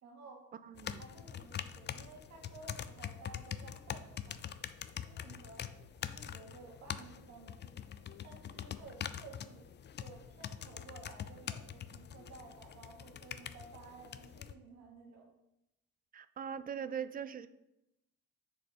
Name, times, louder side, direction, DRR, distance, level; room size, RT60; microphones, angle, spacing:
voice 1, 0.0-0.4 0.9-4.4 5.0-5.7 6.0-7.9 8.2-9.6 10.0-15.3, right 4 dB, 65° right, 0 dB, 1.7 m, -54 dB
voice 2, 0.6-1.0 16.1-17.5, right 8 dB, 30° right, 14 dB, 0.4 m, -41 dB
sound 1, 0.8-14.5, left 9 dB, 35° left, 0.4 m, -44 dB
6.7 x 4.1 x 4.8 m, 0.89 s
cardioid pair, 90°, 30 cm